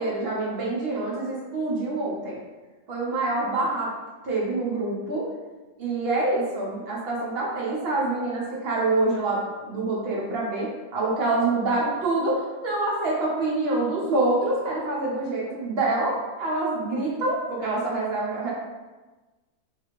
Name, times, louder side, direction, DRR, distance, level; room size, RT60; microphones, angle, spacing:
voice 1, 0.0-2.4 2.9-3.9 4.2-5.3 5.8-18.5, right 2 dB, 55° right, -4 dB, 0.7 m, -26 dB
2.6 x 2.4 x 2.9 m, 1.2 s
omnidirectional pair, 1.6 m